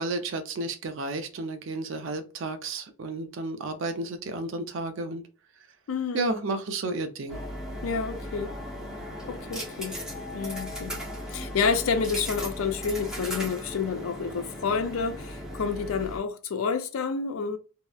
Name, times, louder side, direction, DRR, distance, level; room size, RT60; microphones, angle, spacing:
voice 1, 0.0-5.3 6.1-7.4, right 2 dB, 60° right, 0.4 m, -32 dB
voice 2, 5.9-6.2 7.8-8.6 9.3-10.0 10.3-11.0 11.3-17.6, left 5 dB, 70° left, 0.4 m, -29 dB
sound 1, 7.3-16.2, equal, 5° right, 0.6 m, -37 dB
2.8 x 2.0 x 2.2 m
head